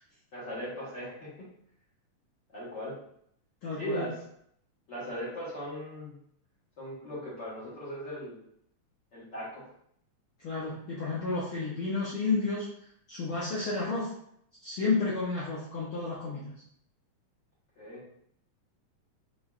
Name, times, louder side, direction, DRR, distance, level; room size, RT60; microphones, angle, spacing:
voice 1, 0.3-1.3 2.5-2.9 3.8-4.2 4.9-6.2 6.8-8.4 9.1-9.7 17.8-18.0, equal, 45° left, -10 dB, 1.6 m, -38 dB
voice 2, 3.6-4.1 10.4-12.7 13.1-14.1 14.6-16.5, left 3 dB, 80° left, -7 dB, 1.1 m, -31 dB
4.7 x 3.8 x 2.4 m, 0.70 s
omnidirectional pair, 3.6 m